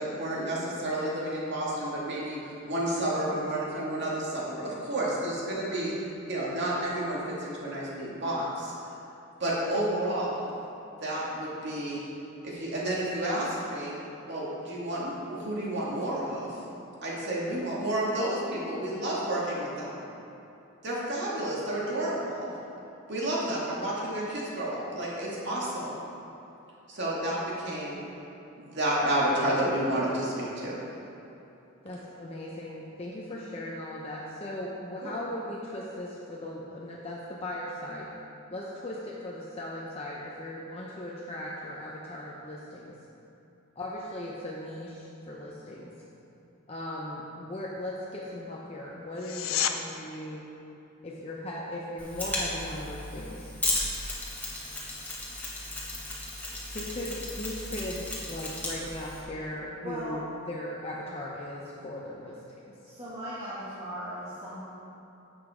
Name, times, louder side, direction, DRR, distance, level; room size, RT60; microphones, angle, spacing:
voice 1, 0.0-5.9 6.3-8.7 9.4-10.5 10.9-12.0 12.4-14.0 14.3-16.6 17.0-20.1 20.8-22.5 23.1-26.0 26.9-28.0 28.6-30.8 35.0-35.1, right 1 dB, 55° right, -5 dB, 2.3 m, -30 dB
voice 2, 31.8-38.1 38.5-42.9 43.8-45.9 46.7-50.4 51.0-53.5 56.7-62.6, left 1 dB, 30° left, -4 dB, 0.8 m, -38 dB
sound 1, 49.1-49.8 61.1-61.2, left 10 dB, 70° left, 0.6 m, -29 dB
Mechanisms, 52.0-59.2, left 2 dB, 10° left, 1.7 m, -35 dB
voice 3, 59.8-60.2 62.8-64.6, equal, 30° right, -14 dB, 2.4 m, -38 dB
11.0 x 8.1 x 3.8 m, 2.9 s
head